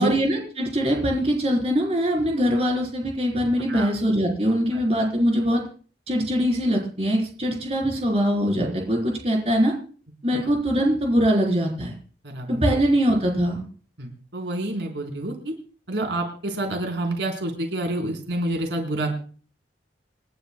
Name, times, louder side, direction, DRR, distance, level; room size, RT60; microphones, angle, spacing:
voice 1, 0.0-5.6 6.1-9.7 10.2-11.9 12.5-13.6, equal, 35° right, 0 dB, 4.0 m, -22 dB
voice 2, 12.2-12.6 14.0-15.5 15.9-19.1, right 1 dB, 90° right, 2 dB, 4.0 m, -28 dB
28.0 x 11.5 x 2.3 m, 0.41 s
head